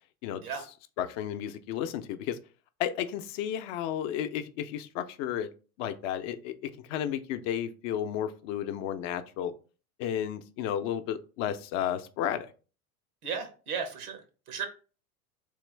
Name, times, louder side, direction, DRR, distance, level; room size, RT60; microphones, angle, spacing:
voice 1, 1.0-2.4 2.8-5.5 5.8-9.5 10.0-12.5, left 10 dB, 65° left, 0.6 m, -33 dB
voice 2, 13.2-14.7, right 6 dB, 90° right, 1.1 m, -35 dB
3.5 x 3.0 x 3.3 m
hypercardioid pair, 85°, 43 cm